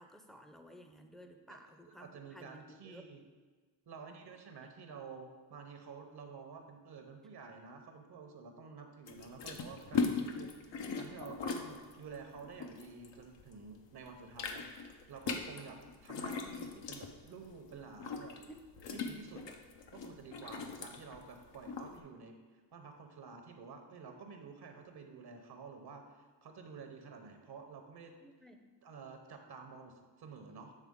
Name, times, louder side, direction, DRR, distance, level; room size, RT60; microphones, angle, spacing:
voice 1, 0.0-3.0 18.5-18.6 28.2-28.6, equal, ahead, 5 dB, 0.5 m, -55 dB
voice 2, 1.9-3.2 3.9-18.4 18.9-19.6 19.9-28.1 28.8-30.7, right 5 dB, 60° right, 5 dB, 0.8 m, -50 dB
sound 1, 9.1-13.6 13.9-21.9, left 5 dB, 75° left, 0.7 m, -39 dB
7.5 x 3.5 x 3.6 m, 1.4 s
cardioid pair, 65°, 44 cm